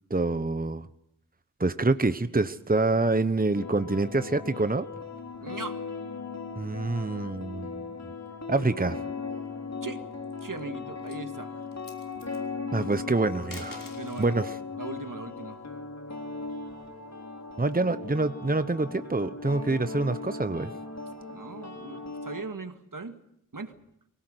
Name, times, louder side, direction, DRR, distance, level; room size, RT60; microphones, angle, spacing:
voice 1, 0.1-0.9 1.6-4.9 6.6-7.9 8.5-9.0 12.7-13.9 14.2-14.6 17.6-20.7, right 2 dB, 25° right, 12 dB, 1.0 m, -26 dB
sound 1, 3.5-22.4, left 4 dB, 55° left, 3.2 m, -38 dB
voice 2, 5.4-5.8 9.8-10.0 10.4-11.5 13.9-14.4 14.8-15.6 21.3-23.2 23.5-23.7, right 3 dB, 75° right, 8 dB, 2.0 m, -39 dB
sound 2, 10.1-10.6 11.0-11.3 11.7-12.4 13.3-14.4 15.9-17.0, left 2 dB, 80° left, 5.3 m, -48 dB
24.5 x 18.0 x 8.1 m, 0.76 s
wide cardioid pair, 45°, 33 cm